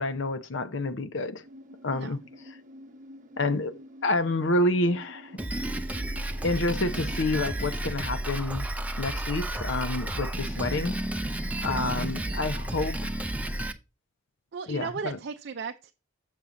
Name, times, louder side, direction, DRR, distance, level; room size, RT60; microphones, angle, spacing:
voice 1, 0.0-1.4 1.8-2.2 3.4-5.3 6.4-8.6 9.0-11.0 11.6-13.0 14.7-15.2, left 2 dB, 70° left, 0.8 m, -28 dB
sound 1, 1.4-7.5, equal, 40° right, 0.9 m, -49 dB
Drum kit, 5.4-13.7, right 1 dB, 5° right, 0.6 m, -32 dB
voice 2, 14.5-15.9, right 5 dB, 60° right, 0.5 m, -36 dB
7.1 x 6.6 x 3.7 m
head